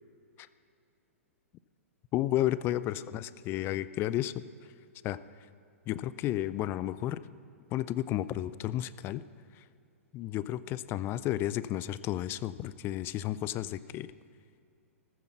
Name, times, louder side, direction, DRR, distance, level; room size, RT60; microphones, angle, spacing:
voice 1, 2.1-4.3 5.0-5.2 5.9-7.2 7.7-9.2 9.6-9.7 10.1-14.1, left 13 dB, 30° left, 16 dB, 0.4 m, -32 dB
14.5 x 14.0 x 5.9 m, 2.5 s
figure-of-eight pair, 110°, 8 cm